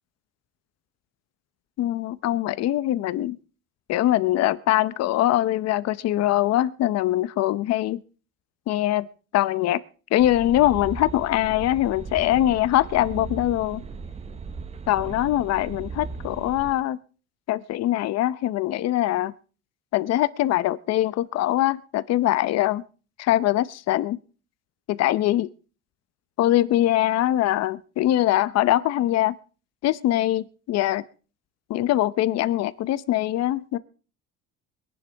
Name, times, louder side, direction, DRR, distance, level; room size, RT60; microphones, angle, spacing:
voice 1, 1.8-3.4 3.9-8.0 8.7-9.1 9.3-9.8 10.1-13.8 14.9-17.0 17.5-19.3 19.9-22.8 23.2-24.2 24.9-25.5 26.4-29.3 29.8-31.0 31.7-33.8, left 14 dB, 60° left, 16 dB, 0.8 m, -22 dB
sound 1, 10.2-16.7, right 5 dB, 20° right, 0.8 m, -37 dB
22.5 x 11.0 x 3.4 m, 0.37 s
cardioid pair, 145°, 30 cm